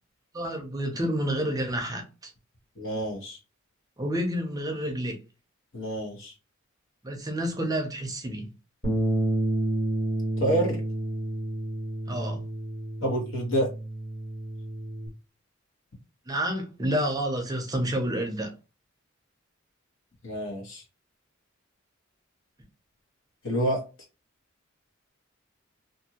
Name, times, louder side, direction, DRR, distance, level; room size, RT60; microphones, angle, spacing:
voice 1, 0.3-2.3 4.0-5.2 7.0-8.5 12.1-12.4 16.3-18.5, right 1 dB, 20° right, 0.6 m, -29 dB
voice 2, 2.8-3.4 5.7-6.3 10.4-10.8 13.0-13.7 20.2-20.8 23.4-23.8, right 1 dB, 70° left, 1.3 m, -28 dB
Bass guitar, 8.8-15.1, right 1 dB, 35° left, 1.5 m, -30 dB
2.6 x 2.6 x 2.8 m
head